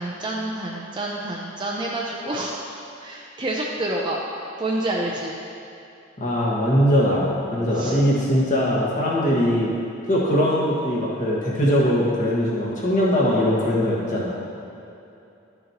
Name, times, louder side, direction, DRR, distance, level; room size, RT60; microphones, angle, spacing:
voice 1, 0.0-2.6 3.0-4.2 4.6-5.3 7.7-8.0, right 1 dB, 25° right, -3 dB, 0.5 m, -28 dB
voice 2, 6.2-9.7 10.1-14.3, equal, 40° left, -6 dB, 1.7 m, -21 dB
12.5 x 6.5 x 3.0 m, 2.7 s
head